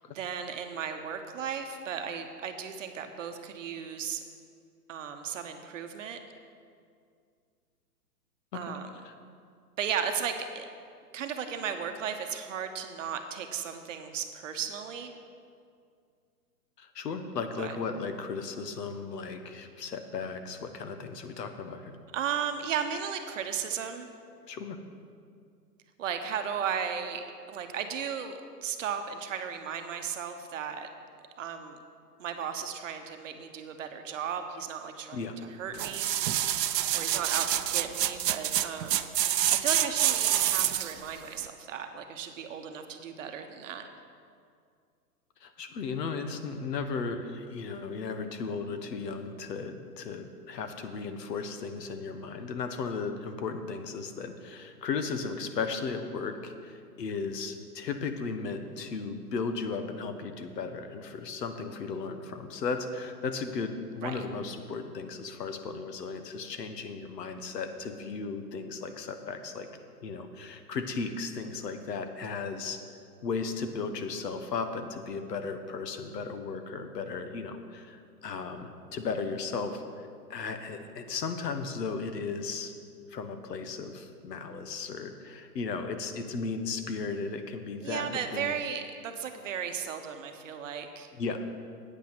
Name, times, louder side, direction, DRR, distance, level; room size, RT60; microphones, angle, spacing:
voice 1, 0.1-4.2 4.9-6.2 8.5-8.9 9.8-10.7 11.1-15.1 17.6-17.8 22.1-24.1 26.0-30.9 31.4-31.8 32.2-35.2 35.6-36.1 36.4-43.9 64.0-64.2 87.8-91.1, right 7 dB, 50° right, 7 dB, 0.9 m, -35 dB
voice 2, 16.8-22.0 24.5-24.8 35.1-35.3 45.4-69.7 70.0-72.8 73.2-82.7 83.1-88.5 91.2-91.6, left 4 dB, 75° left, 8 dB, 1.3 m, -35 dB
sound 1, 35.7-41.0 41.5-41.6, right 12 dB, 80° right, 0.7 m, -27 dB
8.9 x 8.5 x 6.0 m, 2.3 s
hypercardioid pair, 150°, 49 cm